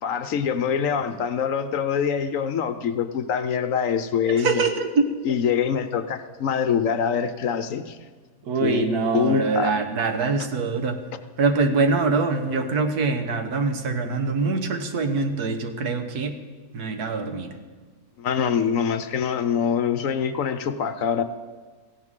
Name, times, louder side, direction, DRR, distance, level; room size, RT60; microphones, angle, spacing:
voice 1, 0.0-4.7 5.2-8.0 8.6-8.9 9.1-9.7 18.2-21.2, left 7 dB, 65° left, 10 dB, 1.0 m, -24 dB
voice 2, 4.3-5.1 8.5-11.0 11.4-16.4 16.7-17.5, right 4 dB, 80° right, 6 dB, 1.6 m, -24 dB
17.0 x 15.5 x 3.7 m, 1.4 s
omnidirectional pair, 1.6 m